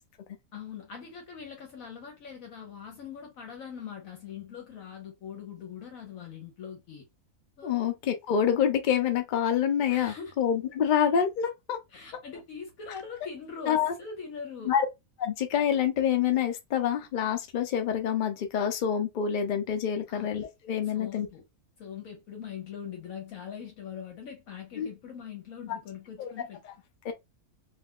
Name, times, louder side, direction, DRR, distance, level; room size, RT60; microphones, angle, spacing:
voice 1, 0.5-7.1 7.6-7.8 9.9-10.3 11.9-14.8 20.1-20.3 20.8-21.4 21.8-26.6, left 7 dB, 70° left, 1.1 m, -42 dB
voice 2, 7.6-11.8 13.7-13.9 14.7-14.9 15.2-21.3 24.8-24.9 26.2-26.3 27.0-27.1, left 8 dB, 90° left, 0.4 m, -27 dB
2.6 x 2.3 x 3.5 m
omnidirectional pair, 1.6 m